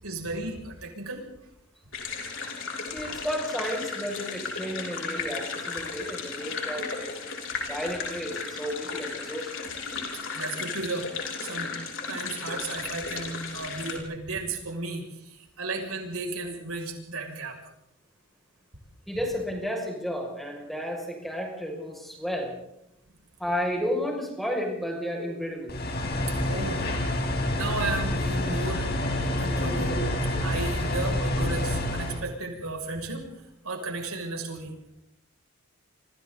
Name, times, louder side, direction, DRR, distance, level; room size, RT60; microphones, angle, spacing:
voice 1, 0.0-1.2 10.1-11.7 12.1-17.6 26.3-27.0 27.5-28.9 29.4-30.0 30.4-34.7, right 2 dB, 85° right, 2 dB, 6.6 m, -34 dB
sound 1, 1.9-14.0, left 4 dB, 60° left, 5.5 m, -35 dB
voice 2, 2.9-7.1 7.7-9.7 19.1-22.5 23.4-25.7, equal, ahead, 0 dB, 6.3 m, -32 dB
sound 2, 25.7-32.2, left 1 dB, 45° left, 4.8 m, -27 dB
28.5 x 26.0 x 4.0 m, 0.82 s
head